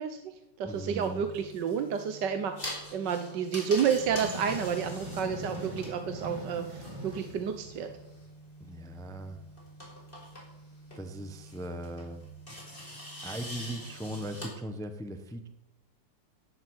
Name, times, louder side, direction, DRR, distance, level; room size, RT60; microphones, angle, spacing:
voice 1, 0.0-7.9, right 7 dB, 60° right, 7 dB, 1.4 m, -31 dB
voice 2, 0.6-1.2 8.6-9.4 10.9-12.3 13.2-15.5, right 1 dB, 5° left, 7 dB, 0.6 m, -39 dB
sound 1, 0.7-14.5, equal, 20° left, 5.5 m, -45 dB
sound 2, 3.8-8.4, right 1 dB, 15° right, 2.7 m, -41 dB
17.5 x 7.7 x 8.2 m, 0.97 s
omnidirectional pair, 2.4 m